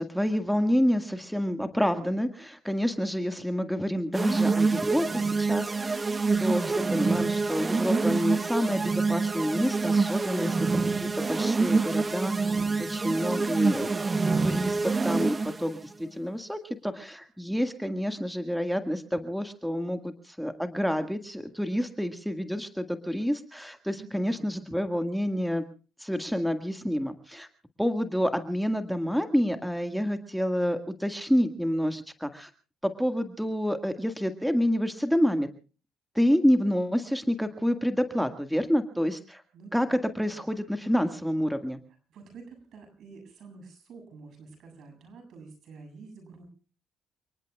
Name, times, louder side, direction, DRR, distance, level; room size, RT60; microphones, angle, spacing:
voice 1, 0.0-6.0 6.4-10.7 11.0-12.5 12.9-14.0 14.4-25.6 26.0-27.5 27.8-32.5 32.8-35.5 36.2-39.4 39.7-41.8, equal, ahead, 7 dB, 1.8 m, -28 dB
sound 1, 4.1-15.7, right 4 dB, 30° right, 1.0 m, -26 dB
voice 2, 23.9-24.5 39.5-39.7 40.3-40.4 42.1-46.5, right 4 dB, 70° right, 6 dB, 7.6 m, -48 dB
29.5 x 19.0 x 2.4 m, 0.37 s
cardioid pair, 90°, 0 cm